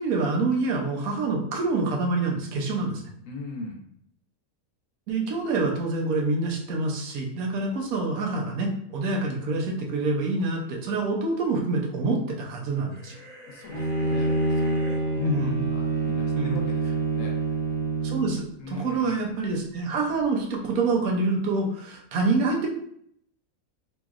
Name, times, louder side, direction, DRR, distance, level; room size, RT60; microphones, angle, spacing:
voice 1, 0.0-3.0 5.1-13.2 15.2-15.6 16.4-16.6 18.0-22.7, right 3 dB, 75° right, 0 dB, 1.1 m, -26 dB
voice 2, 3.2-3.8 7.6-7.8 13.5-15.4 15.7-17.4 18.6-19.3, left 3 dB, 65° left, 1 dB, 0.9 m, -40 dB
sound 1, 12.9-15.0, equal, 10° left, 0.6 m, -46 dB
Bowed string instrument, 13.7-18.5, right 3 dB, 50° left, 0.4 m, -26 dB
3.0 x 2.7 x 2.3 m, 0.69 s
omnidirectional pair, 1.5 m